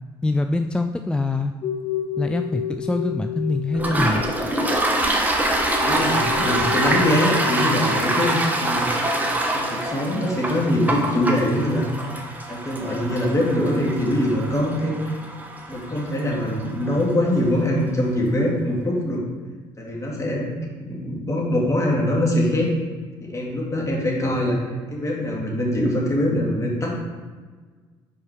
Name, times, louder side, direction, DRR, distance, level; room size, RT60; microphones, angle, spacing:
voice 1, 0.2-1.5 2.2-4.2, left 2 dB, 10° left, 6 dB, 0.3 m, -24 dB
sound 1, 1.6-8.7, left 10 dB, 55° left, 0.6 m, -32 dB
Toilet flush, 3.7-17.1, right 1 dB, 15° right, 1.1 m, -25 dB
voice 2, 5.8-8.9 9.5-11.8 12.5-15.1 15.7-19.2 19.8-20.5 20.9-22.7 23.2-24.6 24.9-26.9, left 1 dB, 30° left, -2 dB, 2.0 m, -23 dB
5.4 x 4.8 x 4.9 m, 1.4 s
supercardioid pair, 80°, 11 cm